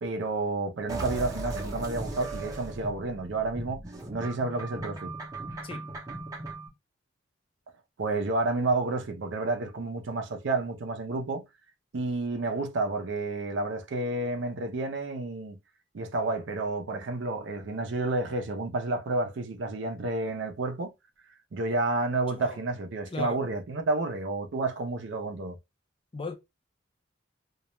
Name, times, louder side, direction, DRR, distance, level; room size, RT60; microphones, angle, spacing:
voice 1, 0.0-3.8 4.1-5.1 8.0-11.4 11.9-15.6 15.9-20.9 21.5-25.6, right 2 dB, 70° right, 0.5 m, -30 dB
sound 1, 0.9-6.7, right 2 dB, 20° right, 0.6 m, -37 dB
voice 2, 23.1-23.4 26.1-26.4, left 4 dB, 30° left, 0.4 m, -37 dB
2.3 x 2.1 x 2.8 m
head